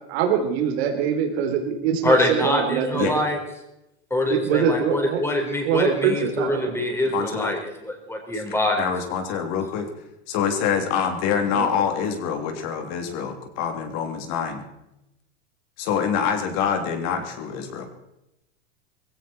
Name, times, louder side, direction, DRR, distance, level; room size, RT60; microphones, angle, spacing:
voice 1, 0.1-3.2 4.3-5.2 5.7-6.8 11.5-11.8, right 7 dB, 65° right, 3 dB, 3.7 m, -23 dB
voice 2, 2.0-3.4 4.1-8.9, left 1 dB, 10° left, 2 dB, 4.2 m, -24 dB
voice 3, 7.1-7.5 8.3-8.4 8.8-9.9 10.3-14.6 15.8-17.9, left 7 dB, 50° left, 5 dB, 3.2 m, -25 dB
19.5 x 16.0 x 4.4 m, 0.87 s
supercardioid pair, 125°, 33 cm